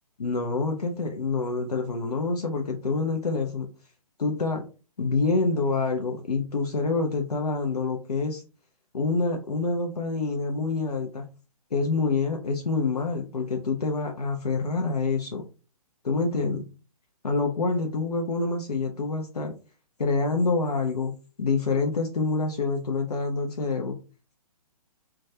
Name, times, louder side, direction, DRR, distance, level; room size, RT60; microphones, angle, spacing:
voice 1, 0.2-3.7 4.2-4.6 5.0-8.4 8.9-11.3 11.7-15.4 16.0-16.6 17.2-19.5 20.0-24.0, left 3 dB, 85° left, 2 dB, 0.5 m, -27 dB
2.2 x 2.2 x 2.7 m, 0.34 s
figure-of-eight pair, 130°, 19 cm